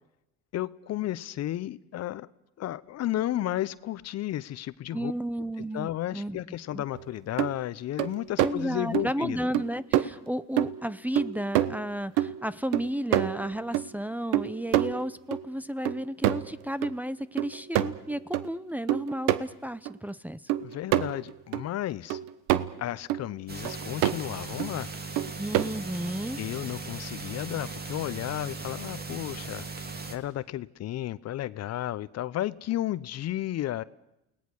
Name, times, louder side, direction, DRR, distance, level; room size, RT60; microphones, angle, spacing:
voice 1, 0.5-2.3 2.6-5.1 5.7-9.4 20.6-22.2 22.8-24.9 26.4-29.8 30.1-33.8, left 13 dB, 50° left, 17 dB, 0.8 m, -33 dB
voice 2, 4.9-6.4 6.7-6.8 8.4-20.4 25.4-26.4, equal, 5° right, 11 dB, 0.7 m, -33 dB
sound 1, 6.9-7.0 7.4-7.6 8.0-8.6 8.9-9.1 9.5-9.7 9.9-10.1 10.6-10.9 11.2-11.9 12.2-13.9 14.3-15.5 15.9-16.6 16.8-16.9 17.4-18.5 18.9-19.4 19.9-20.0 20.5-21.6 22.1-22.8 23.1-23.2 23.6-24.2 24.6-24.7 25.2-25.9, right 13 dB, 70° right, 1.0 m, -27 dB
sound 2, 23.5-30.2, right 3 dB, 30° right, 2.6 m, -38 dB
29.0 x 18.5 x 6.4 m, 0.88 s
supercardioid pair, 75°, 33 cm